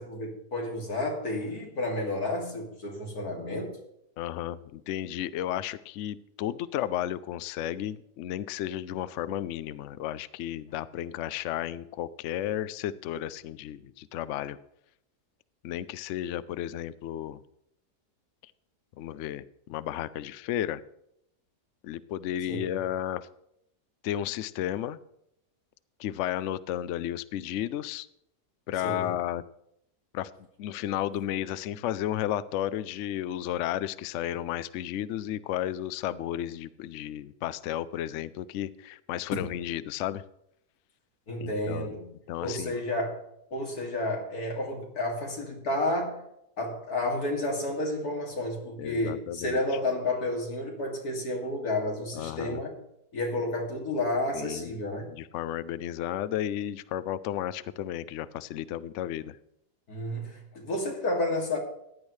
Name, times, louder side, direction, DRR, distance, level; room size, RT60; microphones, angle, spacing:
voice 1, 0.0-3.8 22.5-22.7 28.8-29.1 39.3-39.4 41.3-42.1 42.4-43.2 43.5-46.2 46.6-52.7 53.1-55.1 59.9-61.6, left 1 dB, 60° left, 0 dB, 3.0 m, -31 dB
voice 2, 4.2-14.6 15.6-17.4 19.0-20.8 21.8-23.3 24.0-25.0 26.0-28.1 28.7-29.4 30.1-30.3 30.6-40.2 41.4-42.0 42.3-42.7 48.8-49.6 52.1-52.6 54.3-54.7 55.1-59.4, left 11 dB, 80° left, 16 dB, 0.6 m, -33 dB
15.5 x 10.5 x 3.2 m, 0.78 s
omnidirectional pair, 1.8 m